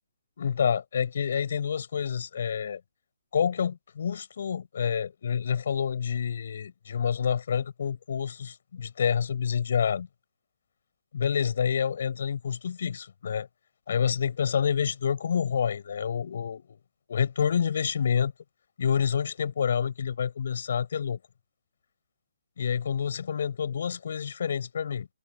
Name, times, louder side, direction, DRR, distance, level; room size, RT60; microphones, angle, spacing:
voice 1, 0.4-2.8 3.3-10.1 11.1-13.5 13.9-16.8 17.1-18.3 18.8-21.2 22.6-25.1, left 7 dB, 55° left, 6.2 m, -28 dB
figure-of-eight pair, 140°, 0 cm